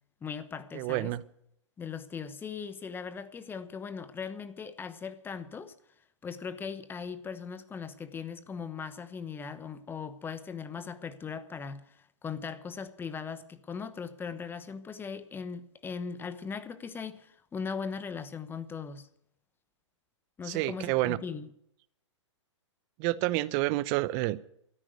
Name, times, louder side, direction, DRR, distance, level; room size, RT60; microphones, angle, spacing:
voice 1, 0.2-1.1 1.8-5.7 6.2-19.1 20.4-21.5, left 6 dB, 15° left, 1.1 m, -39 dB
voice 2, 0.7-1.2 20.4-21.2 23.0-24.4, right 18 dB, 35° right, 0.7 m, -29 dB
13.0 x 9.9 x 9.1 m
hypercardioid pair, 125°, 16 cm